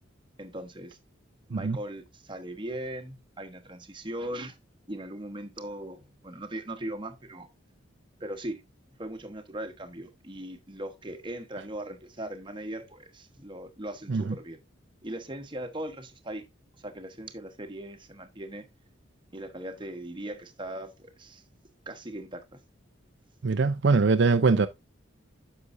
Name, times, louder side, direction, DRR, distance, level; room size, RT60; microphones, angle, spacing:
voice 1, 0.4-1.0 1.5-4.6 4.9-7.5 8.2-8.6 9.0-14.6 15.0-16.5 16.7-18.7 19.3-21.4 21.9-22.6, right 1 dB, 25° right, 1.2 m, -39 dB
voice 2, 23.4-24.7, right 4 dB, 65° right, 0.5 m, -22 dB
9.6 x 6.9 x 2.6 m
head